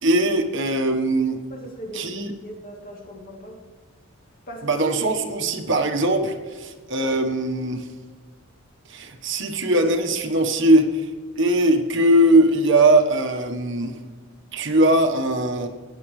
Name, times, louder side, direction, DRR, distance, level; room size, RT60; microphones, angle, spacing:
voice 1, 0.0-1.4 1.9-2.3 4.6-7.9 8.9-11.1 11.4-14.0 14.5-15.7, right 1 dB, 60° right, 5 dB, 1.3 m, -20 dB
voice 2, 1.5-3.6 4.5-4.9, right 1 dB, 45° left, 0 dB, 2.7 m, -38 dB
17.5 x 9.5 x 3.2 m, 1.4 s
head